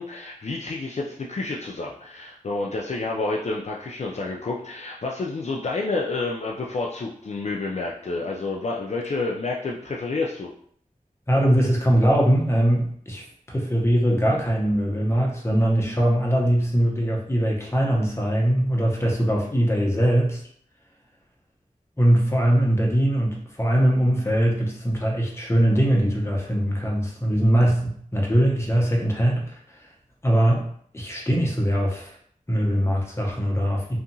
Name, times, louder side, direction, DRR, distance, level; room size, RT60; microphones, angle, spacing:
voice 1, 0.0-10.5, left 3 dB, 55° left, -2 dB, 0.4 m, -29 dB
voice 2, 11.3-20.4 22.0-29.9 30.2-30.7 30.9-32.1 32.5-34.0, equal, 20° left, -2 dB, 0.8 m, -21 dB
2.7 x 2.4 x 2.6 m, 0.62 s
wide cardioid pair, 55°, 14 cm